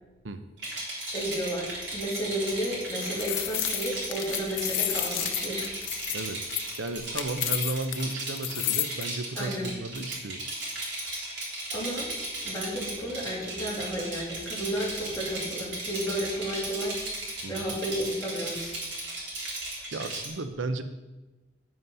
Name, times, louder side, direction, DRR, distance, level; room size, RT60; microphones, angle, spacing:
Rattle, 0.6-20.3, right 2 dB, 65° right, 3.6 m, -36 dB
voice 1, 1.1-5.7 9.3-9.7 11.7-12.1 12.4-17.1 17.5-18.7, equal, 20° left, -5 dB, 3.0 m, -32 dB
sound 1, 2.7-9.0, left 13 dB, 80° left, 0.7 m, -31 dB
voice 2, 6.8-10.4 17.4-17.6 19.9-20.8, right 2 dB, 85° right, 9 dB, 0.7 m, -34 dB
9.5 x 7.8 x 5.5 m, 1.1 s
head